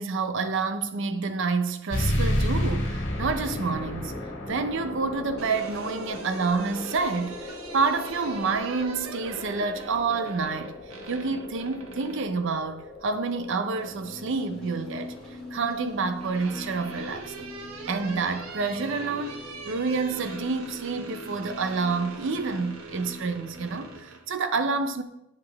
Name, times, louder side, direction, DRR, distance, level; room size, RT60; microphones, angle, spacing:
voice 1, 0.0-4.2 4.5-10.8 11.1-15.1 15.5-17.5 17.9-19.4 19.7-25.0, right 4 dB, 60° right, 0.6 m, -28 dB
sound 1, 1.9-17.0, left 1 dB, 60° left, 1.6 m, -34 dB
sound 2, 5.1-12.3 13.8-14.5 15.7-24.2, right 3 dB, 90° right, 1.1 m, -43 dB
sound 3, 13.8-24.0, left 2 dB, 5° left, 2.2 m, -42 dB
8.1 x 5.6 x 3.4 m
head